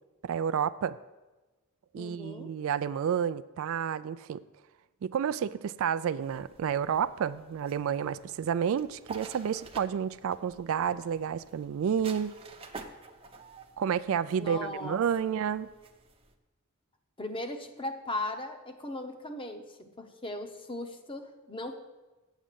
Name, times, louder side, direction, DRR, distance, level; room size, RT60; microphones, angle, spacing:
voice 1, 0.2-1.0 1.9-4.4 5.0-12.3 13.8-15.7, right 8 dB, 65° right, 15 dB, 0.3 m, -30 dB
voice 2, 2.0-2.5 14.4-15.0 17.2-21.8, left 2 dB, 25° left, 6 dB, 0.8 m, -38 dB
sound 1, 6.2-16.3, right 4 dB, 25° right, 0.7 m, -50 dB
8.2 x 6.3 x 7.4 m, 1.2 s
head